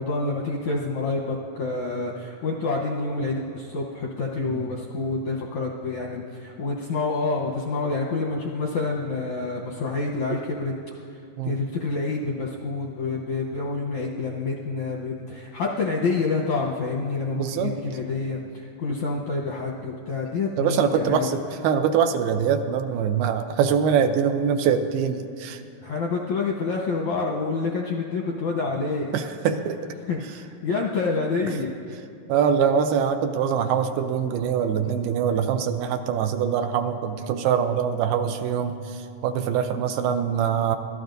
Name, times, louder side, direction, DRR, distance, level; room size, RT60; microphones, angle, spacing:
voice 1, 0.0-10.7 11.4-21.3 25.8-29.3 30.1-31.7, left 3 dB, 75° left, -2 dB, 1.7 m, -28 dB
voice 2, 17.4-17.8 20.6-25.6 29.1-29.8 32.3-40.8, right 7 dB, 80° right, 7 dB, 2.4 m, -23 dB
24.0 x 16.5 x 2.6 m, 2.5 s
omnidirectional pair, 4.5 m